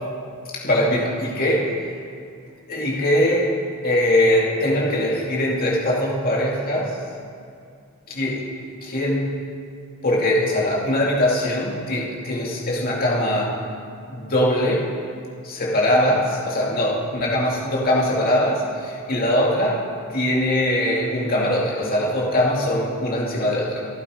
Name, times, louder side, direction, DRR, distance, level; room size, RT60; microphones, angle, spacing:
voice 1, 0.5-1.7 2.7-3.5 3.8-7.0 8.1-8.5 8.8-9.4 10.0-13.6 14.1-14.9 15.4-19.8 20.1-23.8, left 1 dB, 40° left, -4 dB, 2.5 m, -21 dB
24.5 x 12.0 x 5.0 m, 2.4 s
head